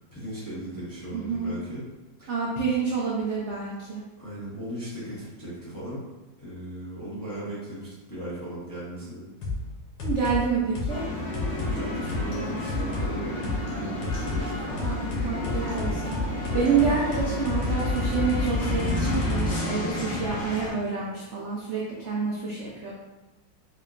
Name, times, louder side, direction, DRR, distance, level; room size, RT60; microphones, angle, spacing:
voice 1, 0.0-1.8 2.2-2.3 4.2-6.0 6.4-9.3 11.6-14.8, right 1 dB, 15° left, -10 dB, 0.8 m, -37 dB
voice 2, 1.1-1.5 2.3-4.0 10.0-11.0 14.8-22.9, right 5 dB, 65° right, -5 dB, 0.7 m, -28 dB
sound 1, 9.4-9.6 10.0-10.4 10.7-10.9 11.3-11.7 12.1-12.2 12.7-13.1 13.4-13.6 14.0-14.4 14.8-20.1, left 3 dB, 90° left, 1.6 m, -29 dB
sound 2, 10.9-20.7, left 1 dB, 50° left, 1.0 m, -32 dB
4.6 x 2.9 x 2.4 m, 1.1 s
omnidirectional pair, 2.0 m